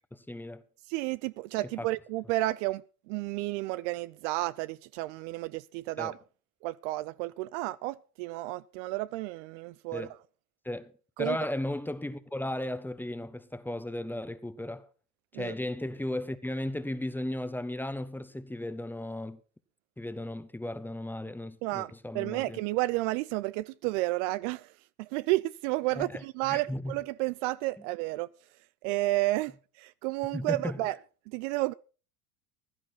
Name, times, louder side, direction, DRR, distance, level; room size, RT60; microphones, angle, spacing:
voice 1, 0.1-0.6 1.8-1.9 6.0-6.1 9.9-10.2 10.6-10.9 11.2-14.9 15.3-19.4 20.0-22.6 25.9-26.9 30.3-30.8, left 1 dB, 5° left, 1.2 m, -35 dB
voice 2, 0.9-6.2 6.6-10.1 11.2-11.4 15.3-15.5 21.6-24.7 25.0-28.3 28.8-31.0 31.3-31.7, right 19 dB, 55° right, 0.6 m, -31 dB
16.0 x 11.5 x 4.4 m
hypercardioid pair, 85°, 44 cm